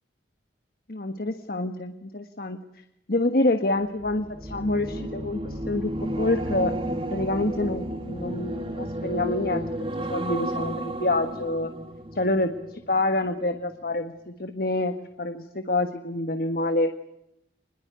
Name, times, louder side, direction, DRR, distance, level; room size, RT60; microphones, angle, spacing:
voice 1, 0.9-2.6 3.1-6.7 7.1-9.7 10.1-11.7 12.2-12.5 12.9-16.9, left 2 dB, 55° left, 7 dB, 1.5 m, -27 dB
sound 1, 4.0-13.3 13.7-14.0, right 1 dB, 30° right, 2.0 m, -33 dB
26.5 x 21.5 x 8.2 m, 0.83 s
head